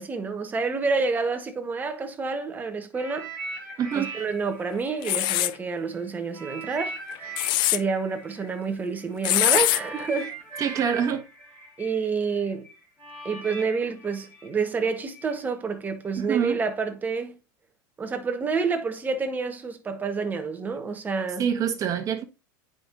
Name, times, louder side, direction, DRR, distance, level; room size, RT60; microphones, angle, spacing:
voice 1, 0.0-3.3 4.0-7.4 7.6-10.4 11.8-12.7 13.2-17.4 18.0-21.5, right 4 dB, 15° right, 1.1 m, -28 dB
sound 1, 2.9-5.9 6.3-15.3 16.0-16.2, right 2 dB, 15° left, 4.6 m, -40 dB
voice 2, 3.8-4.1 10.6-11.3 16.2-16.6 21.4-22.2, right 8 dB, 30° right, 1.3 m, -25 dB
sound 2, 5.0-5.5 7.1-7.8 9.2-9.8, left 17 dB, 45° left, 0.4 m, -22 dB
9.1 x 5.2 x 2.5 m
supercardioid pair, 135°, 11 cm